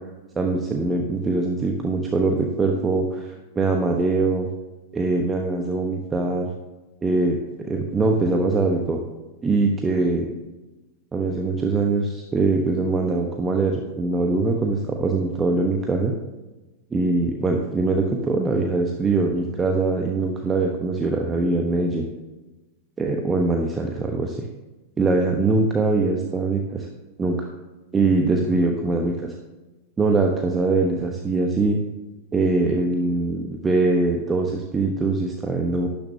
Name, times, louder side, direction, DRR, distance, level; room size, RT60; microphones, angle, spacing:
voice 1, 0.4-4.5 4.9-6.5 7.0-9.0 9.4-10.3 11.1-16.1 16.9-22.0 23.0-24.4 25.0-26.9 27.2-27.5 27.9-29.3 30.0-31.8 32.3-35.9, right 3 dB, 15° right, 2 dB, 1.1 m, -22 dB
12.0 x 10.5 x 2.8 m, 1.1 s
figure-of-eight pair, 90°, 0 cm